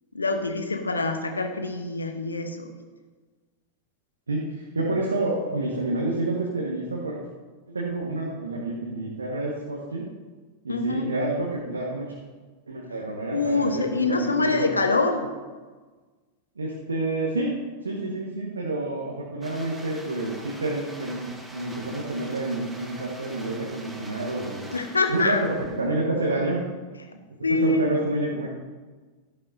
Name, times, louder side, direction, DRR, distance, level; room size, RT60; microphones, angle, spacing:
voice 1, 0.1-2.7 10.7-11.0 13.3-15.3 24.7-25.4 27.4-27.9, left 3 dB, 80° left, 6 dB, 1.0 m, -25 dB
voice 2, 4.3-7.2 7.7-10.1 10.6-12.2 12.7-14.7 16.6-17.5 17.8-24.7 25.1-26.6 27.5-28.5, right 2 dB, 75° right, -3 dB, 1.5 m, -29 dB
sound 1, 19.4-25.9, right 1 dB, 5° right, 1.5 m, -44 dB
12.5 x 11.0 x 2.8 m, 1.4 s
figure-of-eight pair, 90°, 0 cm